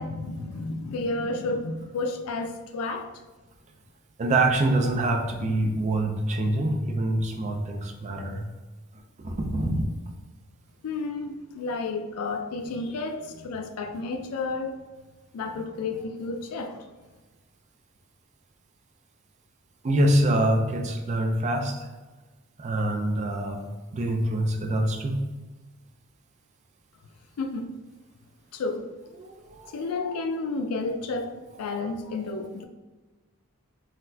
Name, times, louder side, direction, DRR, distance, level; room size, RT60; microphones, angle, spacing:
voice 1, 0.0-3.1 10.8-14.8 15.3-16.9 27.4-27.7 28.5-28.8 29.7-32.7, left 3 dB, 85° left, 7 dB, 0.4 m, -31 dB
voice 2, 4.2-8.5 9.2-9.8 19.8-21.9 22.6-23.6 23.9-25.2 29.2-29.8, right 1 dB, 35° right, 3 dB, 0.3 m, -25 dB
4.0 x 2.1 x 2.6 m, 1.2 s
head